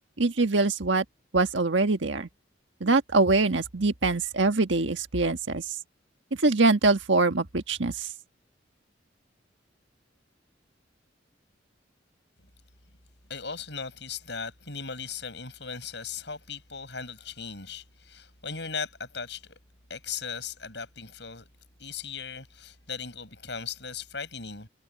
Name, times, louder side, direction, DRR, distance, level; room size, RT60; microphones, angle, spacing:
voice 1, 0.2-1.0 1.3-2.3 2.8-5.7 6.4-8.1, right 3 dB, 80° right, 1.5 m, -23 dB
voice 2, 13.3-19.6 19.9-21.5 21.8-24.7, left 6 dB, 65° left, 8.0 m, -38 dB
head